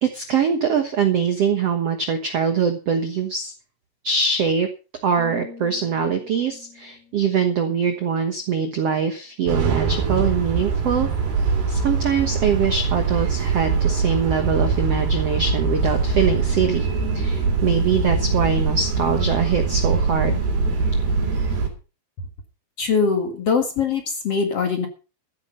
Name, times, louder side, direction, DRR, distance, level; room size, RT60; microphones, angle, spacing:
voice 1, 0.0-3.5 4.0-4.7 5.0-11.1 11.7-16.9 17.1-20.4, right 6 dB, 85° right, 6 dB, 1.3 m, -23 dB
sound 1, 5.2-9.2 9.5-9.8, left 6 dB, 65° left, 6.1 m, -46 dB
sound 2, 9.5-21.7, right 4 dB, 60° right, 5.0 m, -22 dB
voice 2, 22.8-24.9, left 5 dB, 50° left, 5 dB, 2.1 m, -22 dB
14.5 x 10.0 x 5.2 m, 0.34 s
omnidirectional pair, 5.0 m